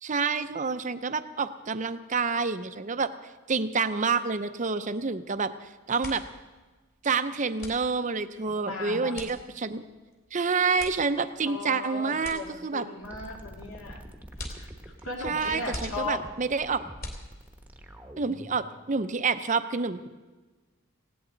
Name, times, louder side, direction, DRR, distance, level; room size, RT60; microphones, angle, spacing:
voice 1, 0.0-3.1 3.5-6.2 7.0-9.8 10.3-12.9 15.2-16.8 18.2-20.1, right 4 dB, 35° right, 11 dB, 0.6 m, -28 dB
sound 1, 5.3-5.5 5.8-17.8, left 1 dB, 40° left, 2.9 m, -44 dB
voice 2, 8.4-9.2 11.4-14.0 14.6-14.7 15.0-16.2, left 3 dB, 65° left, 0 dB, 2.3 m, -37 dB
sound 2, 13.0-18.6, equal, 5° right, 1.0 m, -46 dB
19.0 x 17.0 x 3.9 m, 1.3 s
head